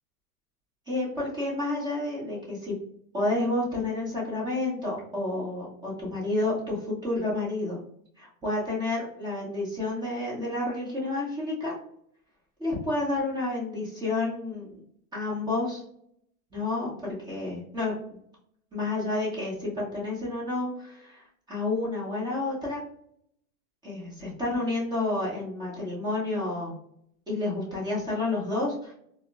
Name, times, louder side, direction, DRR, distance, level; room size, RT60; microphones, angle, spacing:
voice 1, 0.9-2.7 3.1-7.8 8.2-11.7 12.6-14.7 15.1-15.8 16.5-17.9 18.7-22.8 23.8-26.7 27.3-28.9, left 2 dB, 10° right, -6 dB, 0.8 m, -30 dB
3.8 x 2.0 x 2.3 m, 0.68 s
hypercardioid pair, 150°, 46 cm